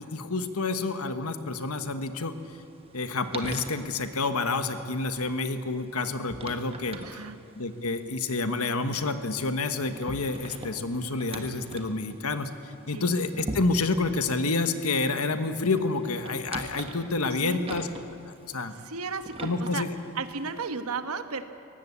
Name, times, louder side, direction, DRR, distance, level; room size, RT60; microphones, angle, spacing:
voice 1, 0.0-2.3 2.9-7.0 7.5-12.5 12.9-17.9 18.3-18.7 19.4-19.9, left 3 dB, 85° left, 9 dB, 1.4 m, -29 dB
sound 1, 2.4-20.7, right 2 dB, 25° right, 1.4 m, -44 dB
voice 2, 7.0-7.4 12.9-13.1 17.4-17.7 18.8-19.8 20.1-21.4, right 4 dB, 80° right, 9 dB, 1.2 m, -34 dB
22.5 x 18.5 x 8.3 m, 2.6 s
head